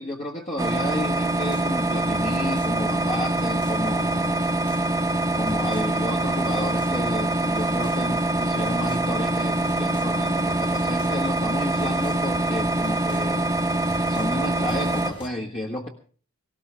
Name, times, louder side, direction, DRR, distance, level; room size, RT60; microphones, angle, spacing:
voice 1, 0.0-4.5 5.3-13.5 14.1-15.9, left 1 dB, 35° left, 0 dB, 1.5 m, -32 dB
sound 1, 0.6-15.1, right 2 dB, 15° right, 1.2 m, -24 dB
sound 2, 1.4-10.2 10.5-15.3, left 1 dB, 50° left, 3.3 m, -44 dB
18.5 x 17.5 x 3.5 m, 0.41 s
head